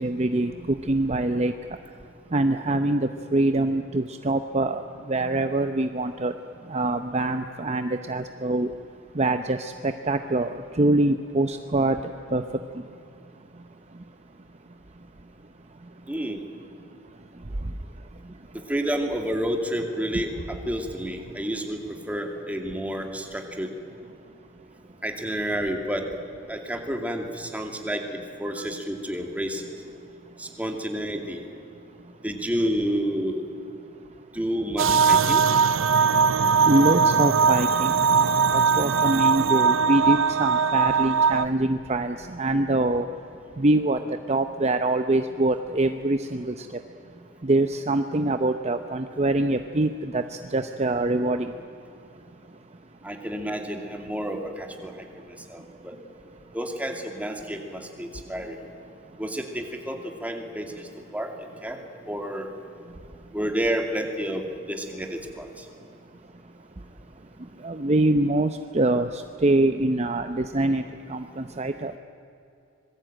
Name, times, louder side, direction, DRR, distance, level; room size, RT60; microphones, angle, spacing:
voice 1, 0.0-1.5 2.3-4.8 5.1-6.3 6.7-8.7 9.2-10.5 10.8-12.0 12.3-12.4 28.6-28.7 36.6-43.1 43.6-44.0 44.3-46.7 47.4-51.5 67.6-70.8 71.1-72.0, right 2 dB, 30° right, 8 dB, 0.8 m, -24 dB
voice 2, 16.1-16.4 18.7-21.8 22.1-23.7 25.0-26.0 26.5-29.6 30.4-31.4 32.2-33.4 34.3-35.5 53.0-54.9 55.5-55.9 56.5-58.6 59.2-60.7 61.1-61.3 61.6-61.8 62.1-62.5 63.3-65.6, equal, 5° right, 3 dB, 2.5 m, -30 dB
sound 1, 34.8-41.5, right 6 dB, 70° right, 0.6 m, -20 dB
26.0 x 21.5 x 9.1 m, 2.6 s
head